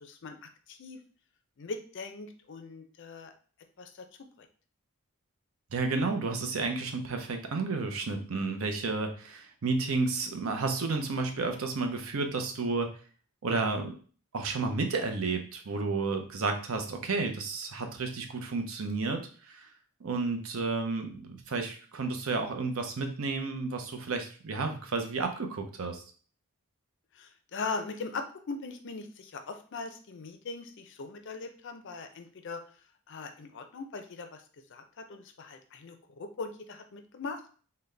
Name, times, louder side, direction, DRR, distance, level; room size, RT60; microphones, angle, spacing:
voice 1, 0.0-1.0 1.6-3.3 3.8-4.1 27.1-32.6 33.1-34.4 34.7-37.6, left 4 dB, 55° left, 6 dB, 0.5 m, -40 dB
voice 2, 5.7-12.9 13.4-14.0 14.3-19.7 20.0-26.0, right 3 dB, 65° right, 5 dB, 0.6 m, -31 dB
3.9 x 2.2 x 3.3 m, 0.41 s
head